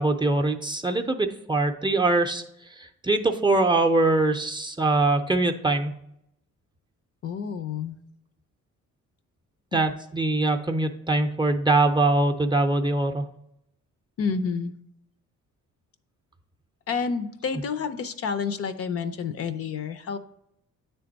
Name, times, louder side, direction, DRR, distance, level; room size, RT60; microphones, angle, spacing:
voice 1, 0.0-2.4 2.8-5.9 9.7-13.2, right 2 dB, 15° right, 4 dB, 0.6 m, -23 dB
voice 2, 7.2-8.0 14.2-14.7 16.9-20.2, left 5 dB, 50° left, 11 dB, 0.6 m, -29 dB
9.0 x 3.5 x 4.0 m, 0.78 s
cardioid pair, 90°, 30 cm